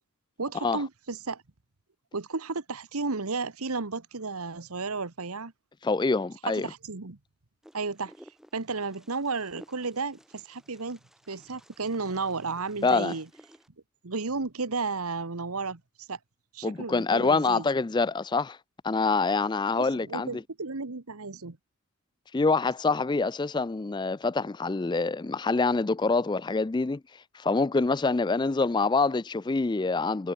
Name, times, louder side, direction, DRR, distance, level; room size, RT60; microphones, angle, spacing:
voice 1, 0.4-1.4 2.1-5.5 6.5-7.2 7.7-8.1 8.5-11.0 11.3-13.3 14.0-15.8 16.1-16.2 16.5-17.6 19.8-21.6, right 4 dB, 80° right, 1.3 m, -33 dB
voice 2, 5.8-6.7 12.8-13.1 16.6-18.6 18.8-20.4 22.3-27.0 27.3-30.3, left 3 dB, 20° left, 0.3 m, -26 dB
Wind, 7.6-13.7, equal, ahead, 4.5 m, -56 dB
head